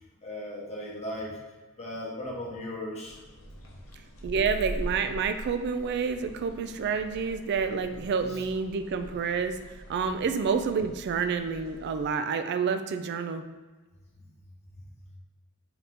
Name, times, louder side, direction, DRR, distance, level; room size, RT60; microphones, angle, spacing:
voice 1, 0.2-1.4 1.8-3.2 8.3-8.4 14.2-14.3, left 1 dB, 30° left, -4 dB, 1.0 m, -37 dB
sound 1, 3.0-12.1, equal, 70° left, 0.7 m, -43 dB
voice 2, 4.2-9.6 9.9-13.5, right 5 dB, 55° right, 8 dB, 0.3 m, -29 dB
4.0 x 2.8 x 3.4 m, 1.2 s
head